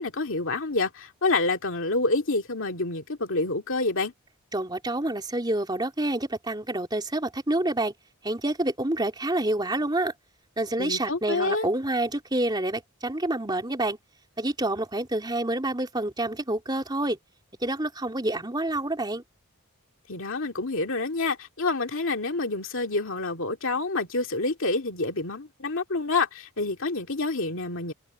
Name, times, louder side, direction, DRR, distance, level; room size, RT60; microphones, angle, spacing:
voice 1, 0.0-4.1 10.8-11.7 20.1-27.9, left 3 dB, 60° left, 2.5 m, -27 dB
voice 2, 4.5-7.9 8.2-10.1 10.6-14.0 14.4-17.2 17.6-19.2, right 1 dB, 20° right, 3.5 m, -28 dB
head